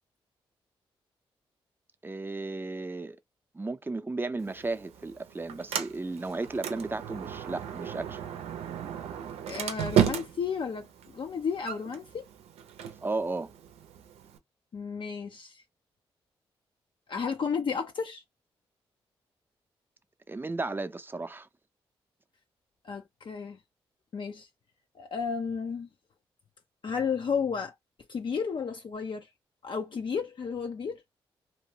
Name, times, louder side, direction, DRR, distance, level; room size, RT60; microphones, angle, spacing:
voice 1, 2.0-3.2 3.5-8.2 13.0-13.5 20.3-21.5, right 3 dB, 20° right, 0.6 m, -34 dB
Sliding door, 4.4-14.4, right 9 dB, 85° right, 0.6 m, -34 dB
voice 2, 9.5-12.3 14.7-15.6 17.1-18.2 22.8-23.6 24.1-24.5 25.0-25.9 26.8-27.7 28.1-29.3 29.6-31.0, left 6 dB, 50° left, 0.5 m, -33 dB
2.9 x 2.2 x 3.2 m
supercardioid pair, 50°, 10 cm